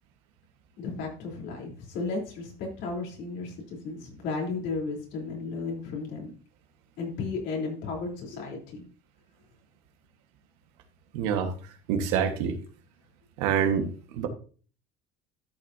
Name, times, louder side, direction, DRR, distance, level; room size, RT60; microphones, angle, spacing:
voice 1, 0.8-6.3 7.0-8.8, left 4 dB, 65° left, 0 dB, 3.8 m, -34 dB
voice 2, 11.1-11.5 11.9-12.5 13.4-13.9 14.1-14.3, right 7 dB, 85° right, 6 dB, 1.6 m, -26 dB
12.0 x 7.2 x 2.8 m, 0.40 s
cardioid pair, 145°, 20 cm